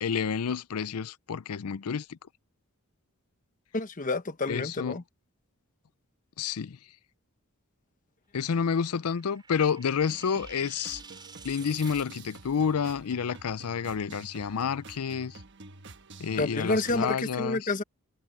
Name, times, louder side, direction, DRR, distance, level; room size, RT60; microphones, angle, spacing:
voice 1, 0.0-2.2 4.5-5.0 6.4-6.8 8.3-11.0 11.4-15.4 16.2-17.7, left 6 dB, 90° left, 0.5 m, -29 dB
voice 2, 3.7-5.0 16.4-17.8, left 2 dB, 35° left, 1.0 m, -29 dB
sound 1, 8.6-12.7, right 5 dB, 20° right, 5.4 m, -50 dB
sound 2, 10.0-17.0, right 3 dB, 55° right, 1.3 m, -48 dB
head